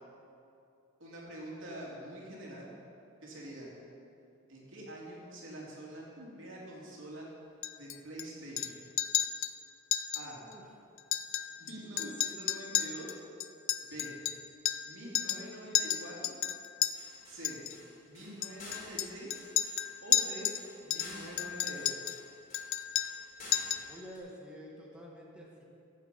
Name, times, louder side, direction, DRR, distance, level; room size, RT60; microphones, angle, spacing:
voice 1, 1.0-2.7 3.2-3.7 4.5-7.3 7.8-8.8 10.1-10.4 11.5-13.2 13.8-14.1 14.8-16.3 17.3-17.6 18.0-19.5 20.0-20.5 20.8-22.0, right 1 dB, 85° right, -4 dB, 2.9 m, -45 dB
Chink clink, 7.6-8.2 8.6-8.7 9.0-9.5 9.9-10.2 10.5-10.6 11.0-11.7 12.0-14.9 15.1-15.5 15.7-16.9 17.4-17.7 18.4-20.6 20.9-22.2 22.5-23.2 23.5-23.9, left 11 dB, 85° left, 0.5 m, -32 dB
sound 1, 16.9-24.2, left 2 dB, 45° left, 3.1 m, -51 dB
voice 2, 23.8-25.6, equal, 5° right, -3 dB, 1.4 m, -49 dB
15.0 x 7.4 x 5.4 m, 2.6 s
head